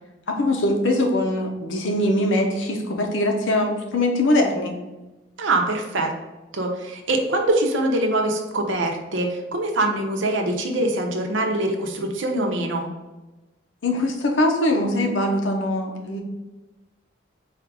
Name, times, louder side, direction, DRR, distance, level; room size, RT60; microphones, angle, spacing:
voice 1, 0.3-4.7 13.8-16.2, left 1 dB, 85° left, 3 dB, 0.8 m, -22 dB
voice 2, 5.4-6.1 6.5-12.9, right 2 dB, 80° right, 2 dB, 0.7 m, -23 dB
4.3 x 2.5 x 4.6 m, 1.1 s
head